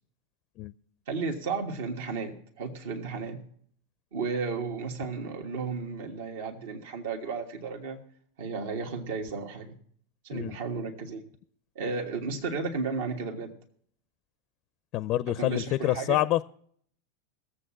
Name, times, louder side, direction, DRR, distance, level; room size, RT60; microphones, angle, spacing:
voice 1, 1.1-3.4 4.1-8.0 8.4-9.8 10.2-11.3 11.7-13.6 15.3-16.2, right 4 dB, 65° right, 1.4 m, -33 dB
voice 2, 14.9-16.4, left 15 dB, 45° left, 0.4 m, -27 dB
18.0 x 7.5 x 6.2 m
hypercardioid pair, 90°, 0 cm